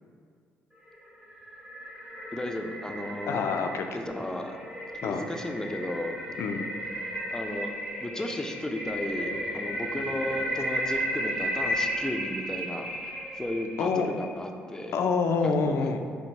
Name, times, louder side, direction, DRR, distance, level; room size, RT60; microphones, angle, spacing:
sound 1, 0.9-14.3, equal, 20° right, 1.5 m, -34 dB
voice 1, 2.3-3.5 3.9-4.6 5.0-6.2 7.3-7.7 8.0-12.9 13.4-15.0 15.4-16.0, left 1 dB, 10° left, 3 dB, 0.5 m, -34 dB
voice 2, 3.3-3.9 5.0-5.2 6.4-6.7 13.8-14.1 14.9-16.0, left 5 dB, 65° left, 6 dB, 0.4 m, -26 dB
4.4 x 2.8 x 4.1 m, 2.1 s
supercardioid pair, 55°, 5 cm